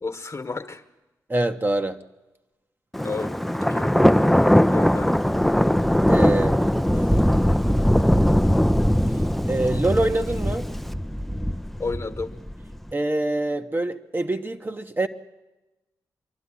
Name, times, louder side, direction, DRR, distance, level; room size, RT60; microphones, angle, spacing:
voice 1, 0.0-0.8 3.0-3.3 3.7-3.9 4.7-5.1 11.8-12.3, left 3 dB, 45° left, 8 dB, 1.4 m, -31 dB
voice 2, 1.3-2.0 6.1-6.6 9.5-10.7 12.9-15.1, right 2 dB, 30° right, 6 dB, 1.1 m, -24 dB
Thunder, 2.9-12.8, equal, 5° left, 0.6 m, -20 dB
24.0 x 12.0 x 9.8 m, 1.1 s
cardioid pair, 55°, 7 cm